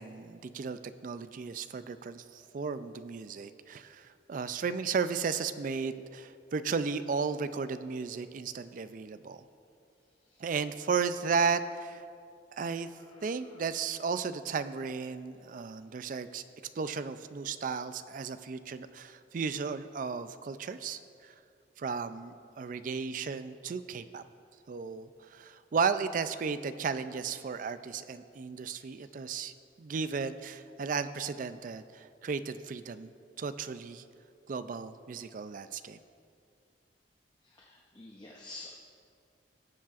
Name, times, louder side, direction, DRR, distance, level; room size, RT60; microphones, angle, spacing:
voice 1, 0.0-9.4 10.4-12.0 12.6-12.9 13.2-16.4 16.8-21.3 21.8-24.2 24.7-29.5 29.8-33.1 33.4-34.0 34.5-36.0, right 5 dB, 45° right, 12 dB, 0.3 m, -34 dB
voice 2, 13.0-13.6 28.9-29.1 37.4-38.7, left 2 dB, 25° left, -1 dB, 0.6 m, -50 dB
18.5 x 7.3 x 2.4 m, 2.4 s
head